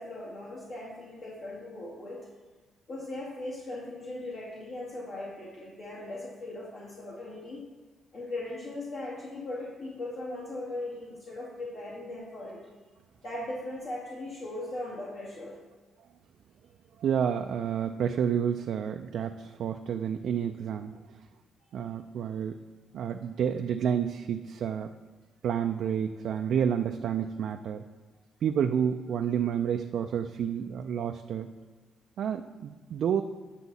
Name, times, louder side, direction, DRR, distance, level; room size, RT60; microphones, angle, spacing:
voice 1, 0.0-2.3 2.9-7.6 8.1-12.6 13.2-15.6, left 2 dB, 65° left, -7 dB, 2.3 m, -39 dB
voice 2, 17.0-21.2 21.7-22.6 22.9-24.9 25.4-27.8 28.4-31.5 32.2-33.2, right 8 dB, 70° right, 5 dB, 0.4 m, -30 dB
9.8 x 5.7 x 4.1 m, 1.4 s
cardioid pair, 90°, 0 cm